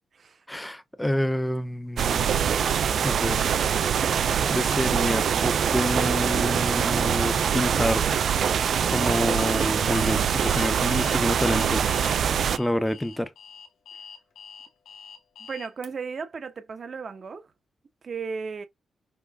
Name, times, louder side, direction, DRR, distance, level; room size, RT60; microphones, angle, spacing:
voice 1, 0.5-2.3 3.0-3.5 4.5-8.0 8.9-11.8 12.6-13.3, left 1 dB, 10° left, 0.9 m, -28 dB
sound 1, 2.0-12.6, right 8 dB, 70° right, 0.4 m, -24 dB
Alarm, 9.0-15.9, left 6 dB, 85° left, 1.1 m, -44 dB
voice 2, 15.4-17.4 18.0-18.7, right 5 dB, 55° right, 1.2 m, -35 dB
6.4 x 2.2 x 3.6 m
cardioid pair, 80°, 0 cm